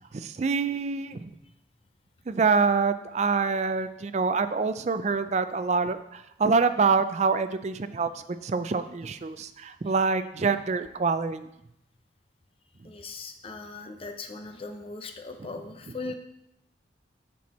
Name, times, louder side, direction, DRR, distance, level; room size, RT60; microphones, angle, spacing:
voice 1, 0.1-1.3 2.3-11.5, right 4 dB, 40° right, 11 dB, 0.4 m, -26 dB
voice 2, 12.8-16.2, left 3 dB, 30° left, 5 dB, 0.6 m, -39 dB
7.4 x 6.1 x 4.2 m, 0.84 s
head